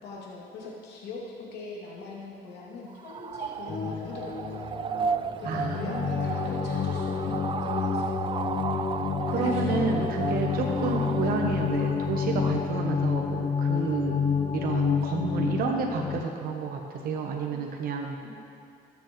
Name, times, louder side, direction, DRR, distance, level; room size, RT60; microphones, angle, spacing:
voice 1, 0.0-4.8 5.4-8.2 9.3-10.0 10.4-10.6 13.7-13.9 17.5-17.7 18.2-18.3, left 3 dB, 85° left, -4 dB, 2.5 m, -41 dB
sound 1, 2.9-12.6, right 6 dB, 30° right, 0.4 m, -34 dB
sound 2, 3.7-16.2, left 6 dB, 30° left, 0.5 m, -29 dB
voice 2, 5.4-6.1 9.3-10.0 10.3-14.2 14.5-18.3, right 5 dB, 60° right, 1 dB, 1.0 m, -30 dB
18.5 x 7.1 x 3.1 m, 2.4 s
cardioid pair, 110°, 17 cm